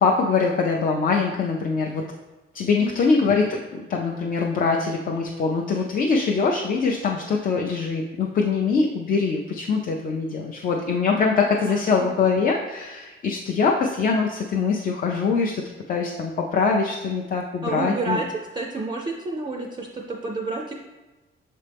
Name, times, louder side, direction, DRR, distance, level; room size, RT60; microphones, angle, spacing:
voice 1, 0.0-2.0 2.5-15.6 15.9-18.2, left 4 dB, 40° left, 0 dB, 0.5 m, -23 dB
voice 2, 11.5-12.1 17.6-18.3 18.5-20.7, right 3 dB, 20° right, 0 dB, 0.4 m, -30 dB
6.6 x 4.2 x 3.4 m, 1.1 s
cardioid pair, 165°, 21 cm